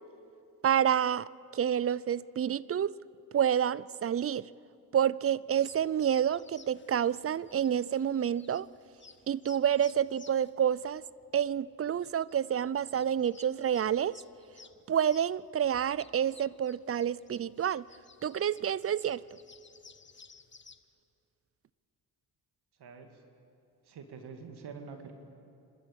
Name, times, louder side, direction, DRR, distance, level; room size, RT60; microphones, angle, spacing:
voice 1, 0.6-2.9 3.3-4.5 4.9-8.7 9.3-11.0 11.3-14.1 14.9-17.9 18.2-19.4, right 9 dB, 35° right, 0.5 m, -29 dB
sound 1, 5.6-20.8, left 5 dB, 25° left, 1.2 m, -58 dB
voice 2, 22.8-23.1 23.9-25.1, right 5 dB, 65° right, 2.1 m, -46 dB
26.0 x 12.5 x 8.8 m
supercardioid pair, 65°, 42 cm